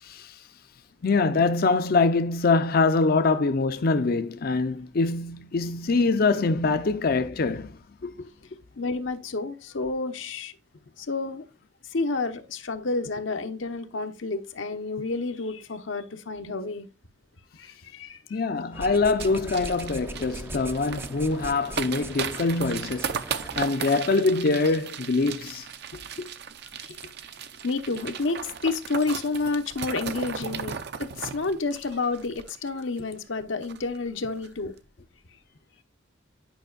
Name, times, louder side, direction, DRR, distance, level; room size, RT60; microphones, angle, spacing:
voice 1, 0.0-0.4 1.0-7.7 8.0-8.3 18.3-23.1 23.6-25.7 25.9-26.3, left 3 dB, 50° left, 0.5 m, -24 dB
voice 2, 8.8-10.5 11.0-11.5 11.8-16.9 17.6-18.5 18.8-18.9 26.8-26.9 27.6-34.7, left 3 dB, 80° left, 0.9 m, -30 dB
sound 1, 18.7-23.7, right 1 dB, 10° right, 0.4 m, -40 dB
sound 2, 19.2-33.0 33.3-33.4 33.6-34.0 34.3-34.5, right 7 dB, 55° right, 0.6 m, -36 dB
9.2 x 5.3 x 2.4 m
head